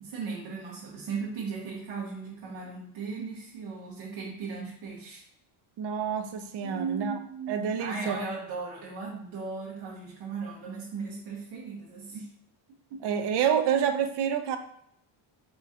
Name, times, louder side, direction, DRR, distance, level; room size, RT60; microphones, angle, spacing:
voice 1, 0.0-5.2 6.6-12.3 12.9-13.1, right 5 dB, 80° right, -5 dB, 1.2 m, -37 dB
voice 2, 5.8-7.2 7.5-8.2 13.0-14.6, right 8 dB, 55° right, 6 dB, 0.6 m, -28 dB
4.1 x 3.0 x 3.7 m, 0.71 s
cardioid pair, 150°, 49 cm